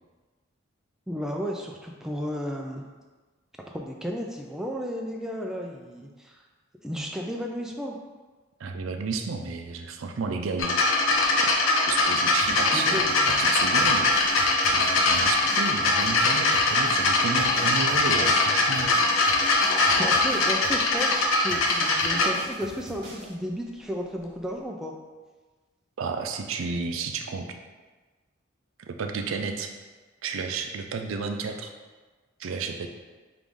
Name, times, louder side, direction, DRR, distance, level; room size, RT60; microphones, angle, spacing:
voice 1, 1.1-2.8 3.7-6.4 6.8-8.0 12.7-13.4 19.9-24.9, equal, 5° right, 0 dB, 0.3 m, -33 dB
voice 2, 8.6-10.8 11.4-11.5 11.9-13.1 13.4-18.9 26.0-27.6 28.8-29.7 30.2-31.7 32.4-32.9, right 4 dB, 80° right, 5 dB, 0.4 m, -32 dB
sound 1, 10.6-22.3 23.2-23.3, left 2 dB, 80° left, 0.6 m, -22 dB
sound 2, 12.4-23.3, right 1 dB, 55° right, 1.1 m, -44 dB
4.7 x 2.5 x 3.6 m, 1.3 s
head